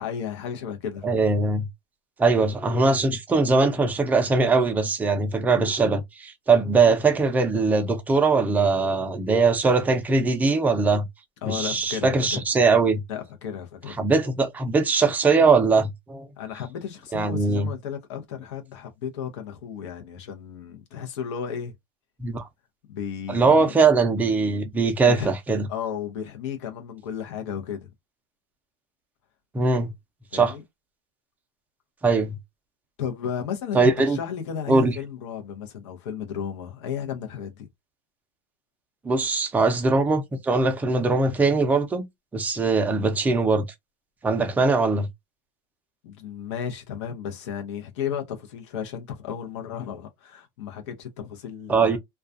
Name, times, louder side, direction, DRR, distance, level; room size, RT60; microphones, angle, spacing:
voice 1, 0.0-1.1 11.4-12.4 13.1-14.0 16.4-21.7 22.9-23.7 25.0-25.3 25.7-27.9 30.3-30.6 33.0-37.7 46.0-52.0, left 8 dB, 80° left, 0.7 m, -33 dB
voice 2, 1.0-1.7 2.2-11.1 11.5-13.0 14.0-16.3 17.1-17.7 22.2-22.5 23.3-25.7 29.5-29.9 30.3-30.5 32.0-32.4 33.7-34.2 34.7-34.9 39.0-42.0 42.3-43.6 44.2-45.1 51.7-52.0, right 4 dB, 10° right, 0.5 m, -21 dB
2.3 x 2.3 x 2.5 m
supercardioid pair, 135°, 15 cm